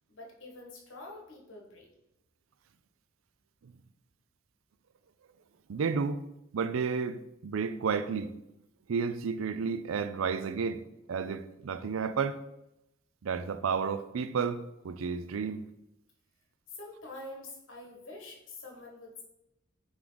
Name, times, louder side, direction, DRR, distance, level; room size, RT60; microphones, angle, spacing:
voice 1, 0.1-1.9 16.7-19.2, left 2 dB, 70° left, 1.5 m, -46 dB
voice 2, 5.7-6.2 6.5-8.3 8.9-10.8 11.1-12.4 13.2-15.6, right 5 dB, 85° right, 0.4 m, -31 dB
9.2 x 3.2 x 3.9 m
head